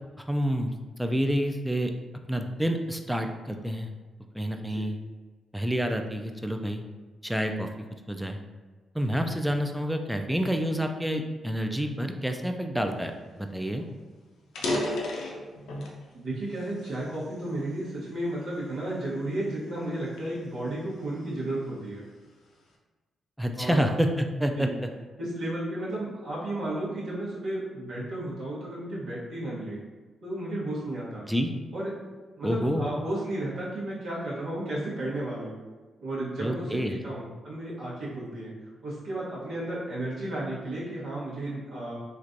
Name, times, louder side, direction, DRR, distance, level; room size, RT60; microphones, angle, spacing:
voice 1, 0.2-1.9 2.3-3.9 4.3-4.9 5.5-6.8 7.2-7.7 8.1-8.4 8.9-13.8 23.4-24.9 31.3-31.5 32.4-32.9 36.4-37.0, equal, 5° right, 5 dB, 0.3 m, -28 dB
sound 1, 13.4-13.5 13.8-13.9 14.4-16.0 16.6-17.8 18.4-18.7 19.3-21.3, left 1 dB, 80° left, 0.5 m, -33 dB
voice 2, 16.1-22.0 23.6-23.9 24.6-24.8 25.2-29.8 30.2-31.2 31.7-31.9 32.4-35.6 36.0-38.5 38.8-42.0, right 1 dB, 75° right, -8 dB, 1.0 m, -33 dB
3.1 x 2.5 x 2.5 m, 1.3 s
supercardioid pair, 60°, 0 cm